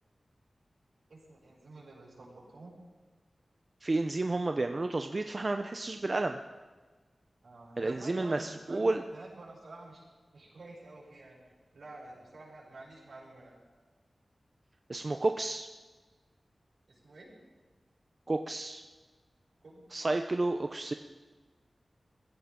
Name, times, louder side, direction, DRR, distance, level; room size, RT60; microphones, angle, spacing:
voice 1, 1.1-2.7 7.4-10.0 10.3-11.4 11.7-13.5 16.9-17.3 19.6-19.9, right 2 dB, 80° right, -5 dB, 6.6 m, -49 dB
voice 2, 3.8-6.4 7.8-9.0 14.9-15.7 18.3-18.8 19.9-20.9, right 2 dB, 40° right, 6 dB, 0.6 m, -31 dB
20.5 x 15.5 x 3.7 m, 1.3 s
wide cardioid pair, 85°, 0 cm